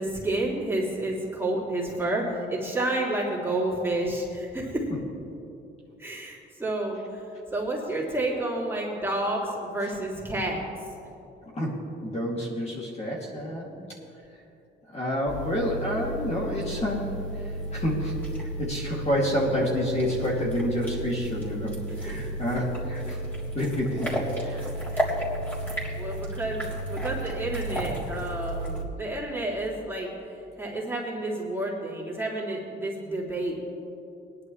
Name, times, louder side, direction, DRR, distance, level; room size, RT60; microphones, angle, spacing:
voice 1, 0.0-4.8 6.0-7.2 7.5-10.6 13.7-13.8 22.0-22.3 24.9-25.1 25.7-30.1 30.6-33.6, right 1 dB, 10° right, -5 dB, 3.3 m, -30 dB
voice 2, 11.6-13.7 14.9-17.1 17.7-18.1 18.4-21.7 22.0-23.2 23.5-24.7, left 1 dB, 35° left, -4 dB, 2.9 m, -28 dB
sound 1, 15.3-28.8, right 1 dB, 10° left, 3.5 m, -32 dB
20.0 x 11.0 x 3.3 m, 2.7 s
cardioid pair, 90°, 20 cm